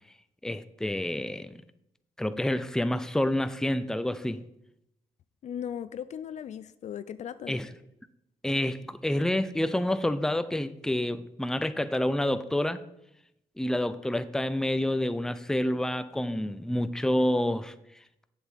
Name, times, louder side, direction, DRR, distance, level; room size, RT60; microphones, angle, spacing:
voice 1, 0.4-1.6 2.2-4.4 7.5-7.7 8.4-12.8 13.6-17.7, left 1 dB, 5° left, 0.6 m, -28 dB
voice 2, 5.4-7.5, left 9 dB, 60° left, 0.5 m, -37 dB
7.8 x 7.1 x 4.2 m
cardioid pair, 70°, 13 cm